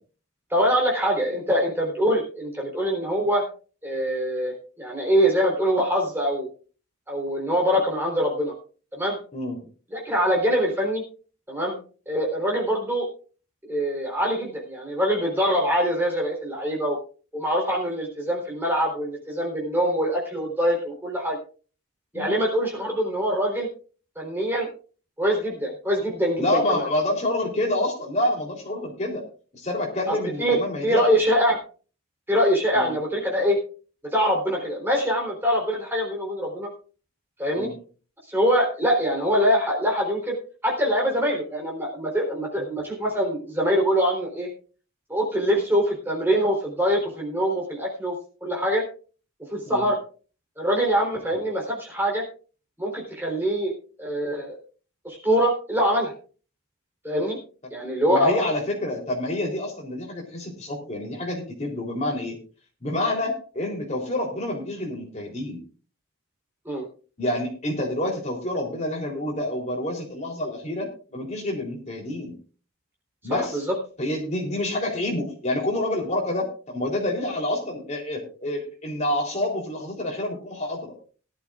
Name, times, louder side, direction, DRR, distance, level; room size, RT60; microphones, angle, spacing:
voice 1, 0.5-3.5 3.8-6.5 7.1-8.5 8.9-9.2 9.9-11.0 11.5-11.8 12.1-13.1 13.7-17.0 17.3-21.4 22.1-23.7 24.2-24.7 25.2-26.9 30.1-31.6 32.3-33.6 34.1-36.7 37.4-37.7 38.3-40.4 40.6-44.5 45.1-48.1 48.4-48.8 49.5-50.0 50.6-52.2 52.8-54.6 55.0-56.1 57.0-57.4 57.7-58.4 66.7-66.8 73.3-73.7, equal, 10° right, -1 dB, 3.6 m, -24 dB
voice 2, 26.4-29.2 29.5-31.1 32.7-32.9 37.5-37.8 42.6-42.7 49.7-49.9 57.8-62.4 62.8-65.6 67.2-72.3 73.2-73.6 74.0-80.9, left 1 dB, 30° left, 0 dB, 3.5 m, -28 dB
19.0 x 11.5 x 2.5 m, 0.38 s
head